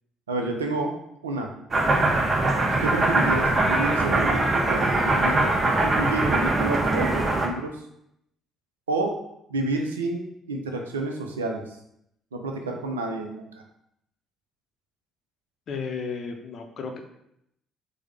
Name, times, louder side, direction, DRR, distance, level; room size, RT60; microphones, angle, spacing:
voice 1, 0.3-1.0 1.2-1.5 2.8-7.8 8.9-9.2 9.5-11.6 12.3-13.5, right 2 dB, 80° right, 3 dB, 0.4 m, -29 dB
sound 1, 1.7-7.5, right 2 dB, 35° right, 0.6 m, -22 dB
voice 2, 15.7-17.0, left 5 dB, 50° left, 4 dB, 0.5 m, -33 dB
4.7 x 2.1 x 3.3 m, 0.77 s
figure-of-eight pair, 50°, 0 cm